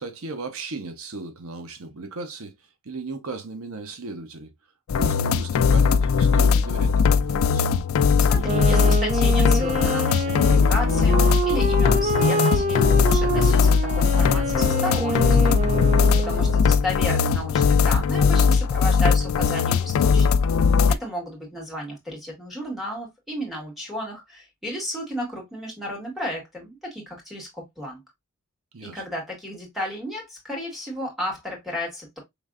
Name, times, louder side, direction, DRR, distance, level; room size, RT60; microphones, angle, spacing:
voice 1, 0.0-4.5 4.9-7.7 16.1-16.4 28.7-29.0, right 3 dB, 75° right, 0.8 m, -36 dB
sound 1, 4.9-21.0, left 5 dB, 70° left, 0.3 m, -19 dB
voice 2, 8.3-15.6 16.2-20.3 20.9-28.0 28.8-32.2, equal, ahead, 1.8 m, -33 dB
Wind instrument woodwind instrument, 8.4-16.7, right 2 dB, 30° right, 0.5 m, -26 dB
5.1 x 3.2 x 2.3 m
head